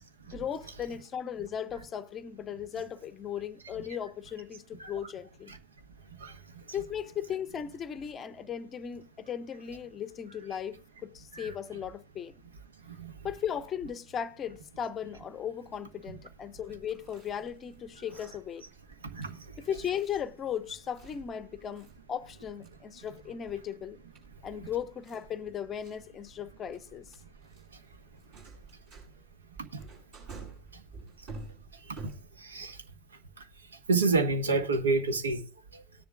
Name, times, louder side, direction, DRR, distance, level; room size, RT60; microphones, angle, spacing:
voice 1, 0.2-5.5 6.7-12.4 13.2-18.6 19.6-24.0 24.4-27.1, left 8 dB, 25° left, 0.7 m, -37 dB
voice 2, 6.2-6.6 11.3-11.5 12.9-13.1 19.0-19.5 29.7-29.8 30.7-30.8 31.9-32.1 32.4-32.8 33.9-35.4 35.7-35.8, right 3 dB, 70° right, 1.3 m, -29 dB
Chewing mastication, 16.7-32.6, right 3 dB, 45° right, 7.7 m, -50 dB
18.5 x 10.5 x 2.2 m
figure-of-eight pair, 90°, 0 cm